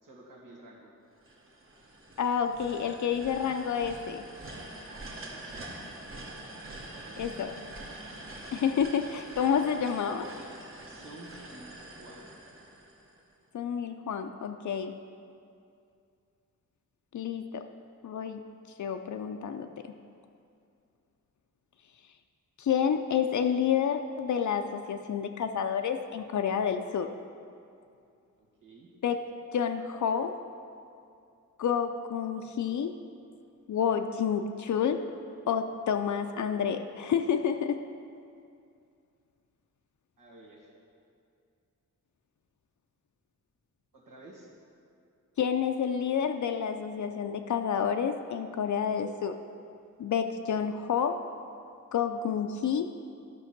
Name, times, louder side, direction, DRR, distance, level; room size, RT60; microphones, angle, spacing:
voice 1, 0.0-0.9 4.8-5.6 6.9-7.2 10.8-12.3 28.4-28.9 40.2-40.7 43.9-44.5, right 1 dB, 85° right, -3 dB, 2.0 m, -51 dB
sound 1, 1.2-13.3, right 1 dB, 40° right, 1.3 m, -45 dB
voice 2, 2.2-4.2 7.2-7.5 8.5-10.3 13.5-14.9 17.1-17.6 18.0-18.4 18.8-19.9 22.6-27.1 29.0-29.2 29.5-30.3 31.6-32.9 33.7-35.0 35.5-37.8 45.4-49.4 50.0-51.2 51.9-52.9, left 7 dB, 65° left, 6 dB, 0.5 m, -29 dB
12.0 x 6.1 x 5.9 m, 2.5 s
wide cardioid pair, 150°, 31 cm